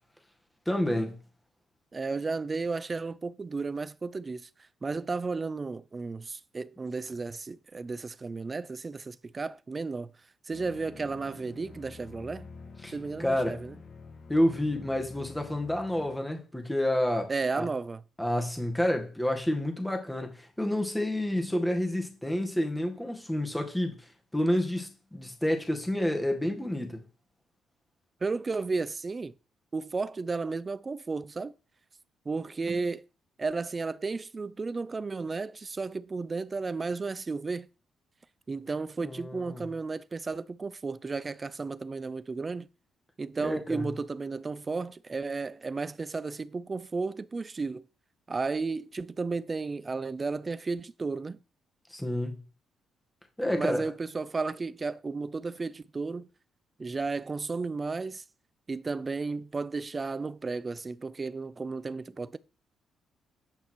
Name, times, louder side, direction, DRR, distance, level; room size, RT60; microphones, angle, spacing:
voice 1, 0.7-1.2 12.8-13.6 14.3-17.7 18.2-24.1 24.3-27.0 39.0-39.6 43.4-43.9 51.9-52.4 53.4-53.9, left 1 dB, 5° left, 1.9 m, -29 dB
voice 2, 1.9-4.5 4.8-10.1 10.5-12.5 12.9-13.8 17.3-18.0 28.2-29.3 29.7-31.5 32.3-33.0 33.4-37.7 38.5-42.7 43.2-47.9 48.3-51.4 53.5-56.3 56.8-58.2 58.7-62.4, right 4 dB, 30° right, 0.5 m, -33 dB
sound 1, 10.5-16.1, left 4 dB, 55° left, 2.0 m, -48 dB
8.6 x 5.7 x 4.6 m
cardioid pair, 90°, 0 cm